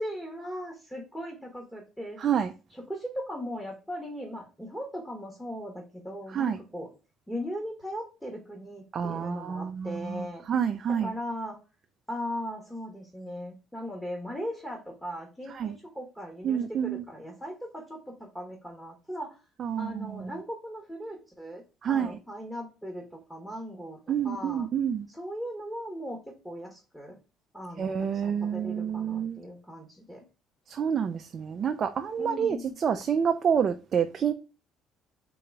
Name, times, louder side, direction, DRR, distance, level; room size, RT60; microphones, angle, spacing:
voice 1, 0.0-2.3 2.7-6.9 7.3-11.6 12.1-19.4 19.8-24.7 25.1-27.2 27.5-30.2 32.2-32.8, equal, 5° left, 1.2 m, -38 dB
voice 2, 2.2-2.5 6.3-6.6 8.9-11.1 15.5-15.7 16.4-17.0 19.6-20.3 21.8-22.1 24.1-25.1 27.8-29.4 30.7-32.6 32.8-34.3, right 8 dB, 45° right, 0.4 m, -28 dB
3.8 x 3.0 x 4.4 m
cardioid pair, 115°, 0 cm